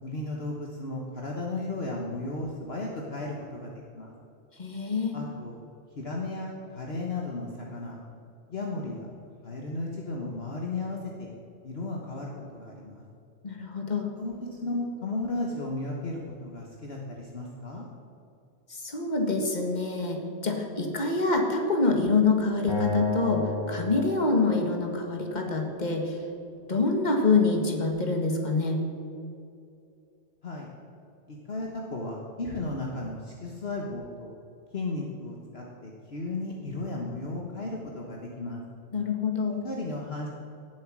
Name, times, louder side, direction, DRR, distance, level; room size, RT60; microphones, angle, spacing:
voice 1, 0.0-4.1 5.1-5.6 6.0-8.0 8.5-9.1 9.4-11.3 11.6-13.0 14.1-17.9 30.4-30.7 31.3-34.3 34.7-38.6 39.6-40.3, left 2 dB, 50° left, -1 dB, 1.5 m, -35 dB
voice 2, 4.6-5.2 13.4-14.1 18.7-26.2 26.7-28.8 38.9-39.6, left 3 dB, 35° left, 2 dB, 1.9 m, -26 dB
Acoustic guitar, 22.7-25.9, left 2 dB, 20° left, 2.5 m, -33 dB
17.5 x 7.7 x 6.1 m, 2.6 s
omnidirectional pair, 1.4 m